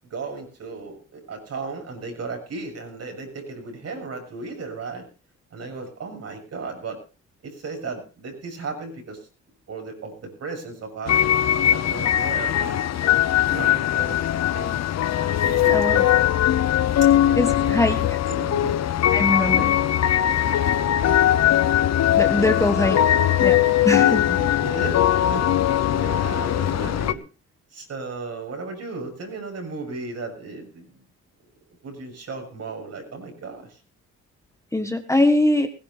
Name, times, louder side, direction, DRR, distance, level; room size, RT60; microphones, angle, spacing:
voice 1, 0.0-5.1 5.5-7.0 7.4-9.3 9.7-12.9 13.5-14.2 14.5-14.9 15.4-16.1 17.0-18.0 18.3-18.8 22.3-23.1 24.0-25.5 25.9-27.2 27.7-31.0 31.8-33.8, right 3 dB, 55° right, 4 dB, 7.2 m, -35 dB
sound 1, 11.1-27.1, left 11 dB, 60° left, 0.9 m, -20 dB
voice 2, 15.7-16.0 17.3-18.0 19.1-19.8 22.2-23.0 23.4-23.6 23.8-24.2 34.7-35.7, left 2 dB, 10° left, 6 dB, 1.5 m, -22 dB
21.0 x 17.0 x 2.7 m, 0.33 s
cardioid pair, 90°, 30 cm